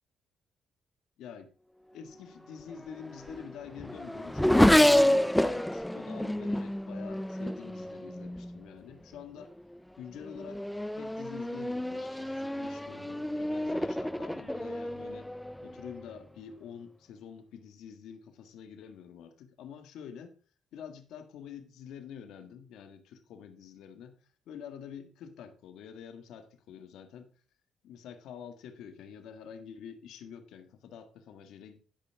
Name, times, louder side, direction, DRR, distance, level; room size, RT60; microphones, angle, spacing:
voice 1, 1.2-1.5 1.9-9.5 10.0-10.6 11.0-15.3 15.6-20.4 20.7-24.2 24.5-27.3 27.8-31.8, left 8 dB, 85° left, 1.6 m, -47 dB
Race car auto racing / Accelerating revving vroom, 2.7-8.6 9.4-9.8 10.2-16.1, left 1 dB, 5° left, 0.4 m, -28 dB
11.5 x 5.6 x 4.7 m
cardioid pair, 90°, 0 cm